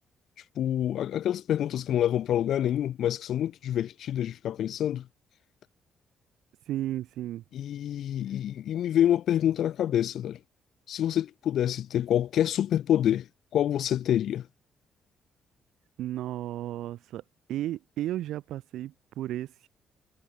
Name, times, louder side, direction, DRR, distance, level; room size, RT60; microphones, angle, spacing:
voice 1, 0.6-5.1 7.5-10.4 10.9-13.3 13.5-14.5, left 11 dB, 70° left, 0.4 m, -27 dB
voice 2, 6.7-7.4 16.0-17.2 17.5-19.7, right 13 dB, 85° right, 0.3 m, -34 dB
cardioid pair, 90°, 0 cm